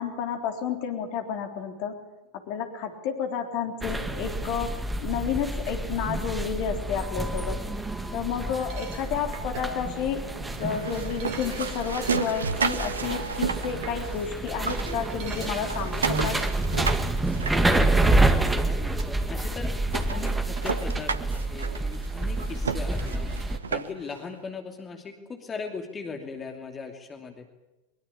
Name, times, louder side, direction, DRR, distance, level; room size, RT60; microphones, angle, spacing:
voice 1, 0.0-1.9 2.5-7.6 8.1-10.3 10.6-16.4, left 7 dB, 45° left, 4 dB, 3.5 m, -31 dB
sound 1, 3.8-23.6, right 2 dB, 10° right, 2.1 m, -28 dB
Diner Ambiance, 8.5-14.6 14.9-16.6, right 3 dB, 45° right, 3.2 m, -40 dB
sound 2, 10.6-14.3 14.6-18.3 19.0-19.1 19.5-19.6 19.9-24.2, right 5 dB, 70° right, 1.1 m, -33 dB
voice 2, 17.4-18.8 19.3-19.7 20.1-23.1 23.7-27.5, left 5 dB, 20° left, 3 dB, 2.8 m, -38 dB
22.5 x 22.5 x 8.6 m, 1.0 s
figure-of-eight pair, 85°, 0 cm